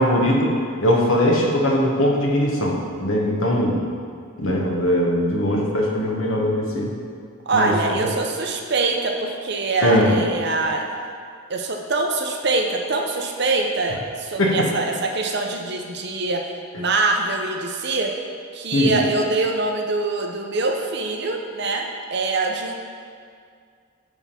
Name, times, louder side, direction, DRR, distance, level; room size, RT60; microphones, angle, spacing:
voice 1, 0.0-3.8 4.4-6.9 7.5-7.7 9.8-10.2 14.4-14.7 18.7-19.0, left 1 dB, 70° left, -1 dB, 1.3 m, -20 dB
voice 2, 7.5-10.9 11.5-16.5 16.7-18.1 18.5-22.7, right 3 dB, 50° right, 3 dB, 0.7 m, -24 dB
9.8 x 3.6 x 5.7 m, 2.2 s
head